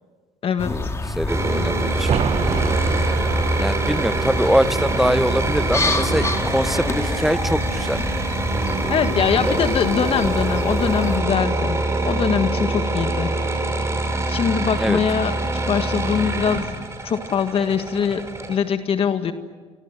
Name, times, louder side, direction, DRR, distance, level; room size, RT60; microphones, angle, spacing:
sound 1, 0.6-11.2, left 2 dB, 20° left, 2.4 m, -28 dB
voice 1, 1.2-2.2 3.6-8.0 14.8-15.0, equal, ahead, 16 dB, 0.8 m, -23 dB
sound 2, 1.3-18.5, right 2 dB, 20° right, 5.8 m, -24 dB
sound 3, 2.0-7.5 7.8-7.9, right 8 dB, 50° right, 1.1 m, -31 dB
voice 2, 8.9-11.8 12.1-13.3 14.3-15.3 15.7-16.7 17.0-18.2 18.5-19.3, left 7 dB, 45° left, 8 dB, 1.7 m, -22 dB
28.0 x 25.5 x 7.8 m, 1.5 s
supercardioid pair, 95°, 13 cm